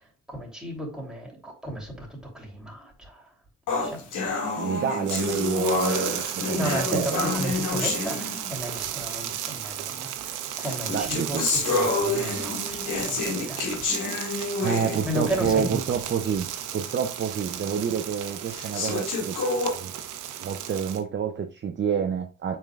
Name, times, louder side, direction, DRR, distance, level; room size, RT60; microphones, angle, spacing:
voice 1, 0.0-3.3 3.7-4.6 6.5-13.8 14.6-14.7 15.0-15.8, right 1 dB, ahead, 3.1 m, -34 dB
sound 1, 3.7-8.8 9.7-9.8 10.6-15.8 16.2-16.3 16.9-17.0 17.7-17.8 18.5-19.7, left 3 dB, 85° left, 2.3 m, -28 dB
voice 2, 4.6-7.3 10.9-11.5 14.6-16.5 16.7-19.4 19.7-19.9 20.4-22.6, right 7 dB, 40° right, 0.7 m, -28 dB
sound 2, 5.1-21.0, right 11 dB, 90° right, 0.8 m, -34 dB
7.2 x 5.5 x 2.4 m
cardioid pair, 90°, 30 cm